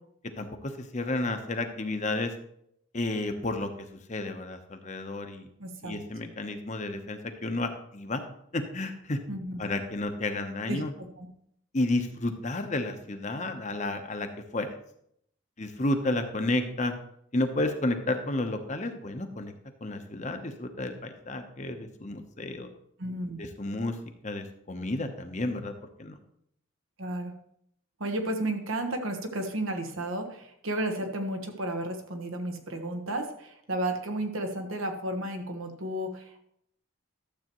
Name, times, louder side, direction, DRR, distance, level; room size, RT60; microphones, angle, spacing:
voice 1, 0.4-2.3 2.9-5.5 5.8-8.2 8.5-9.2 9.6-10.9 11.7-14.8 15.6-16.9 17.3-19.5 19.8-22.7 23.4-24.0 24.2-25.7 26.0-26.2, left 2 dB, 35° left, 6 dB, 0.8 m, -31 dB
voice 2, 5.6-6.0 9.3-9.7 10.7-11.3 23.0-23.4 27.0-27.3 28.0-36.4, right 1 dB, 80° right, 4 dB, 1.3 m, -33 dB
12.0 x 7.7 x 3.0 m, 0.72 s
head